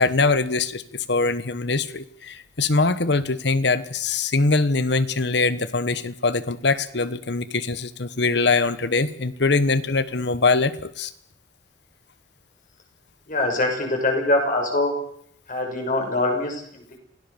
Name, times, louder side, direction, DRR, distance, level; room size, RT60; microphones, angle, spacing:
voice 1, 0.0-11.1, left 3 dB, 60° left, 15 dB, 1.2 m, -22 dB
voice 2, 13.3-14.9 15.5-17.0, left 2 dB, 45° left, 3 dB, 6.3 m, -23 dB
28.0 x 17.5 x 7.2 m, 0.67 s
head